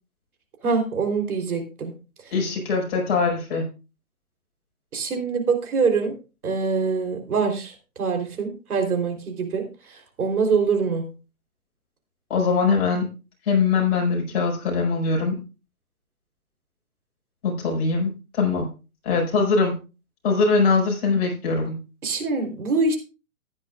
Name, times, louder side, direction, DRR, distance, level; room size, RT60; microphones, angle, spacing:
voice 1, 0.6-1.9 4.9-6.1 6.4-9.6 9.9-11.1 22.0-23.0, right 4 dB, 75° right, 4 dB, 3.8 m, -24 dB
voice 2, 2.3-3.6 12.3-13.1 13.5-15.4 17.4-18.7 19.0-19.8 20.2-21.8, left 4 dB, 45° left, -1 dB, 5.5 m, -22 dB
14.5 x 10.5 x 2.5 m, 0.31 s
hypercardioid pair, 160°, 44 cm